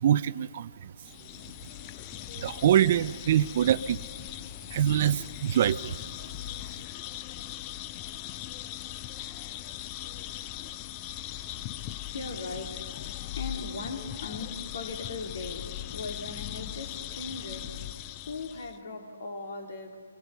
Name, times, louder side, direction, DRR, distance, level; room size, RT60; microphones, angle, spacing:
voice 1, 0.0-0.9 2.4-4.0 4.7-6.0, right 10 dB, 45° right, 17 dB, 0.5 m, -24 dB
sound 1, 1.0-18.8, left 13 dB, 30° left, 0.5 m, -39 dB
voice 2, 10.6-20.0, left 3 dB, 60° left, 3 dB, 2.9 m, -40 dB
23.5 x 19.0 x 6.9 m, 2.1 s
figure-of-eight pair, 135°, 0 cm